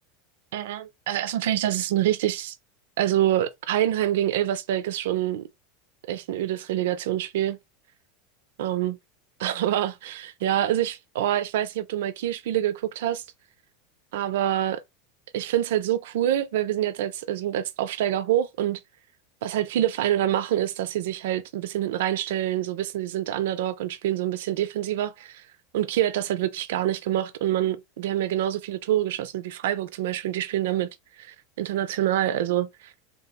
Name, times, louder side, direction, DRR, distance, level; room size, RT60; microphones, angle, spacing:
voice 1, 0.5-2.6 3.0-5.4 6.1-7.6 8.6-8.9 9.4-13.2 14.1-14.8 15.3-18.8 19.4-25.5 25.7-30.9 31.2-32.9, right 12 dB, 75° right, 0.4 m, -26 dB
3.5 x 2.8 x 2.2 m
hypercardioid pair, 100°, 0 cm